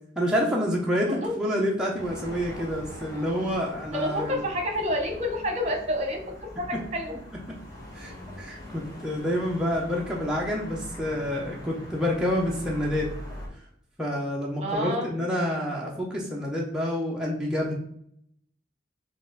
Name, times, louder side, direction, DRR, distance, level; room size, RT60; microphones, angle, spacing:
voice 1, 0.2-4.3 7.9-13.1 14.0-17.7, equal, 5° right, -4 dB, 0.6 m, -28 dB
sound 1, 1.9-13.5, left 1 dB, 20° left, 1.2 m, -42 dB
voice 2, 3.9-7.1 14.6-15.1, equal, 35° right, 3 dB, 1.0 m, -29 dB
4.2 x 2.5 x 3.7 m, 0.70 s
head